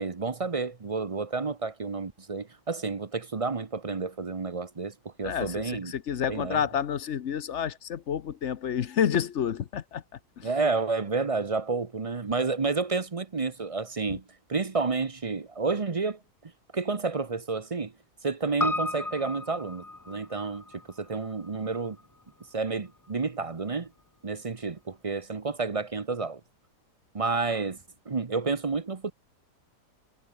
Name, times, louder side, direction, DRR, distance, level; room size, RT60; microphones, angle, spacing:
voice 1, 0.0-5.9 6.3-6.6 10.4-14.2 14.5-17.9 18.2-20.6 21.0-22.0 22.5-23.9 24.2-26.4 27.1-27.8 28.1-29.1, right 4 dB, 30° right, 0.6 m, -30 dB
voice 2, 5.2-10.5 14.1-14.2, left 8 dB, 50° left, 1.0 m, -30 dB
Piano, 18.6-23.1 23.4-23.5, left 2 dB, 15° left, 0.9 m, -35 dB
omnidirectional pair, 1.8 m